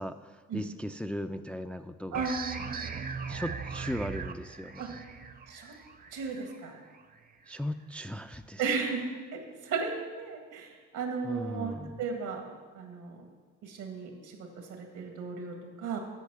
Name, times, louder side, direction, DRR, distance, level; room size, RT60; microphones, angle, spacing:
voice 1, 0.0-2.3 3.2-5.0 7.5-8.6 11.2-12.0, equal, 5° left, 8 dB, 0.3 m, -37 dB
sound 1, 2.1-7.5, right 5 dB, 30° right, 0.6 m, -40 dB
voice 2, 2.1-2.9 4.8-4.9 5.5-5.7 6.1-6.8 8.6-9.0 9.3-12.4 12.7-13.2 13.6-16.0, right 5 dB, 85° right, 3 dB, 1.8 m, -35 dB
8.3 x 6.2 x 6.8 m, 1.5 s
cardioid pair, 90°, 30 cm